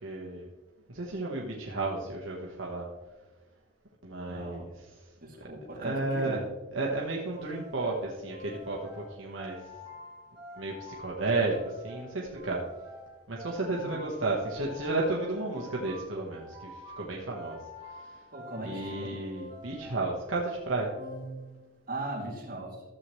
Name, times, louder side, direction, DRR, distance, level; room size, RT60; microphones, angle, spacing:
voice 1, 0.0-0.5 0.9-2.9 4.0-4.7 5.8-6.4 6.7-9.6 10.6-12.6 13.3-17.6 18.6-20.9, right 2 dB, 70° right, -2 dB, 1.2 m, -32 dB
voice 2, 4.3-4.7 5.2-6.4 13.7-14.0 18.3-19.2 19.8-19.9 21.9-22.8, right 1 dB, 45° right, -3 dB, 2.6 m, -39 dB
sound 1, 7.3-21.9, left 1 dB, 15° right, 3.5 m, -47 dB
13.5 x 7.5 x 3.2 m, 1.2 s
head